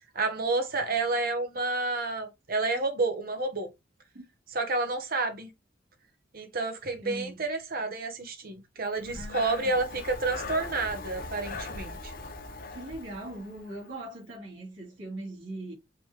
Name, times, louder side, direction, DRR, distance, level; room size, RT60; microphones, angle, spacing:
voice 1, 0.1-3.7 4.5-5.5 6.3-12.1, right 3 dB, 50° right, 1.1 m, -30 dB
voice 2, 7.0-7.4 9.1-9.8 12.7-15.7, right 1 dB, 75° right, 2.4 m, -40 dB
Breathing, 9.0-13.9, left 3 dB, 50° left, 0.9 m, -40 dB
5.3 x 3.0 x 3.2 m
head